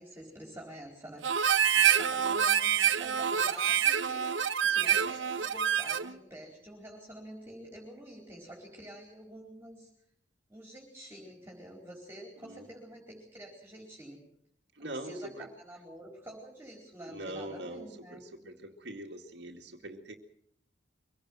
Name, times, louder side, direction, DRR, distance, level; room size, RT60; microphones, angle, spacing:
voice 1, 0.0-1.6 1.9-9.9 10.5-14.2 14.8-18.2, right 1 dB, 15° right, -1 dB, 4.4 m, -48 dB
Harmonica, 1.2-6.1, right 8 dB, 90° right, 1.0 m, -27 dB
voice 2, 1.8-2.4 12.4-12.7 14.7-15.5 17.1-20.2, right 1 dB, 65° right, 1 dB, 2.0 m, -43 dB
24.5 x 17.5 x 7.6 m, 0.70 s
head